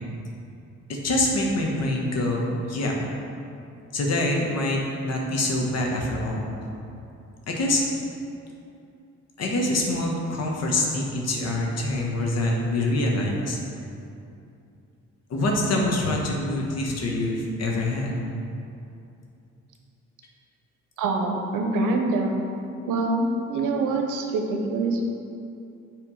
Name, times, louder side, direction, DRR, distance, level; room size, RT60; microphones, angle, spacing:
voice 1, 0.9-2.4 2.7-2.9 3.9-6.5 7.5-7.8 9.4-13.6 15.3-18.1, left 1 dB, 55° left, -1 dB, 1.2 m, -25 dB
voice 2, 21.0-22.4 22.9-25.1, right 3 dB, 85° right, 3 dB, 0.8 m, -25 dB
7.5 x 3.5 x 4.9 m, 2.6 s
cardioid pair, 90°, 30 cm